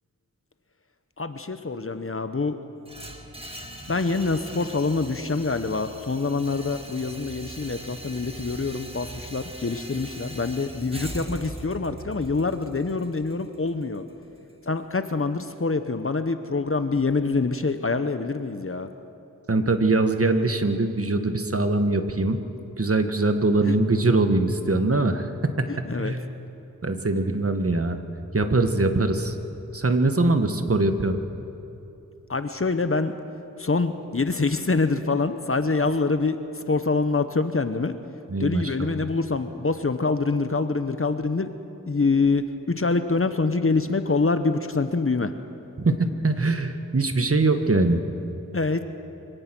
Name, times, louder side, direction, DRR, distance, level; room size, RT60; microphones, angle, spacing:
voice 1, 1.2-2.6 3.9-14.0 14.7-18.9 23.6-23.7 25.7-26.1 32.3-33.1 33.6-38.0 38.4-41.5 41.9-45.3 48.5-48.8, left 3 dB, 40° left, 9 dB, 1.1 m, -25 dB
sound 1, 2.8-14.9, right 1 dB, 15° right, 2.1 m, -41 dB
voice 2, 19.5-22.4 22.8-25.7 25.9-26.2 26.8-28.0 28.3-29.3 29.7-31.2 38.3-38.9 45.8-48.0, right 2 dB, 45° right, 8 dB, 1.6 m, -22 dB
25.0 x 17.5 x 6.2 m, 2.9 s
cardioid pair, 50°, 33 cm